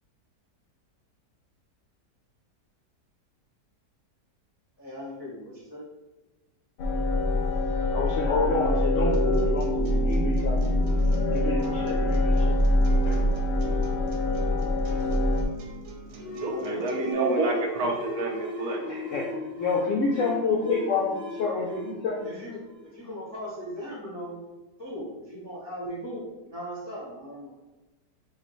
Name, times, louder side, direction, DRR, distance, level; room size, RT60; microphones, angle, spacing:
voice 1, 4.8-5.8 16.1-16.9 21.6-21.9 22.2-24.4 24.8-27.5, equal, 25° left, -5 dB, 0.5 m, -39 dB
sound 1, 6.8-15.4, left 1 dB, 90° left, 1.3 m, -24 dB
voice 2, 7.9-10.7 11.3-12.6 13.0-13.2 18.9-19.3 19.6-22.3, left 4 dB, 75° left, -1 dB, 0.7 m, -28 dB
sound 2, 9.1-17.1, right 4 dB, 85° right, 1.4 m, -44 dB
sound 3, 16.2-23.4, left 2 dB, 25° right, 1.4 m, -37 dB
voice 3, 16.2-18.8, right 3 dB, 65° right, 1 dB, 1.0 m, -28 dB
6.5 x 2.5 x 3.0 m, 1.1 s
omnidirectional pair, 1.9 m